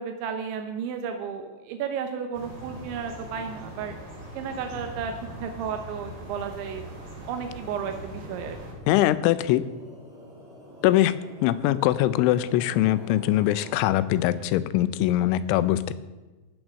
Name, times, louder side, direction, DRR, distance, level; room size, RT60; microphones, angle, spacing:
voice 1, 0.0-4.0 4.4-5.2 5.4-6.8 7.3-8.6, right 7 dB, 80° right, 6 dB, 3.0 m, -33 dB
sound 1, 2.3-8.7, equal, 45° right, 5.0 m, -41 dB
sound 2, 7.4-14.7, equal, 15° right, 3.4 m, -48 dB
voice 2, 8.9-9.6 10.8-11.1 11.4-15.9, left 14 dB, 90° left, 15 dB, 3.1 m, -22 dB
15.0 x 6.4 x 6.3 m, 1.2 s
omnidirectional pair, 5.4 m